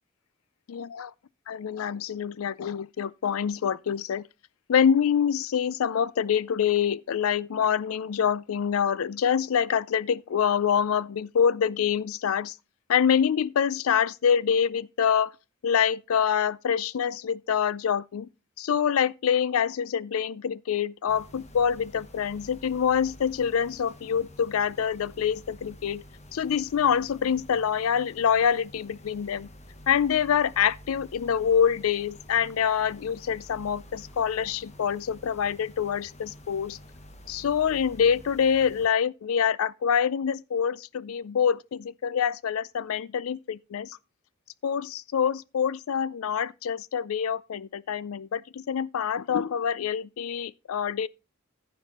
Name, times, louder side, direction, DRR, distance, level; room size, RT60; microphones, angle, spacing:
voice 1, 0.7-1.1 1.5-4.3 4.7-12.5 12.9-15.3 15.6-18.3 18.6-26.0 26.3-29.5 29.9-36.8 37.3-44.0 44.6-51.1, left 7 dB, 90° left, 0.4 m, -26 dB
sound 1, 21.1-38.9, left 1 dB, 35° left, 1.4 m, -49 dB
14.5 x 5.4 x 4.2 m
head